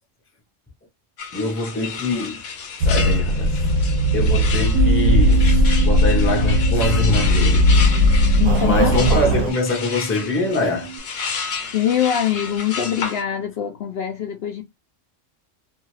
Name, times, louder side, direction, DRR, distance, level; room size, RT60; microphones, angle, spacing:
sound 1, 1.2-13.2, left 5 dB, 85° left, 1.0 m, -31 dB
voice 1, 1.3-2.4 2.8-3.7 4.1-7.6 8.6-10.9, left 2 dB, 15° left, 0.6 m, -24 dB
sound 2, 2.8-9.5, left 1 dB, 90° right, 1.0 m, -17 dB
Bass guitar, 4.7-11.0, right 11 dB, 65° right, 0.8 m, -30 dB
voice 2, 8.4-9.2 11.3-14.6, left 10 dB, 65° left, 0.7 m, -24 dB
2.6 x 2.3 x 3.0 m
omnidirectional pair, 1.3 m